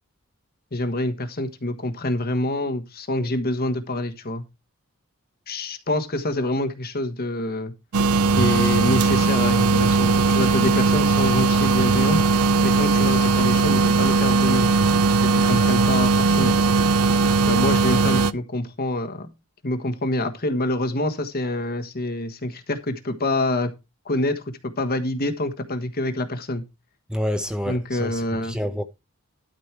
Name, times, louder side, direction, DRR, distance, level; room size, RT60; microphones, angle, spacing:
voice 1, 0.7-4.4 5.5-7.7 8.4-12.2 12.6-14.7 15.1-16.5 17.5-19.3 19.6-23.7 24.0-26.6 27.7-28.6, left 1 dB, 45° left, 1.4 m, -26 dB
sound 1, 7.9-18.3, right 3 dB, 75° right, 0.5 m, -19 dB
voice 2, 27.1-28.8, equal, 5° right, 0.8 m, -28 dB
12.5 x 5.2 x 4.7 m
head